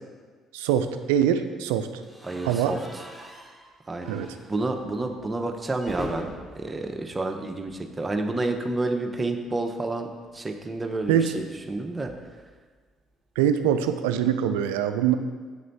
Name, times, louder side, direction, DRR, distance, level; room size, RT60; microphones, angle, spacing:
voice 1, 0.5-1.9 2.4-2.7 4.1-4.3 11.1-11.3 13.4-15.2, right 9 dB, 85° right, 9 dB, 0.3 m, -23 dB
sound 1, 2.0-8.1 8.4-8.6 8.8-8.9 10.2-12.5, equal, 5° left, 1.3 m, -44 dB
voice 2, 2.2-3.1 3.9-4.2 4.5-12.1, right 2 dB, 25° right, 4 dB, 0.7 m, -30 dB
7.9 x 3.2 x 4.0 m, 1.5 s
hypercardioid pair, 55°, 0 cm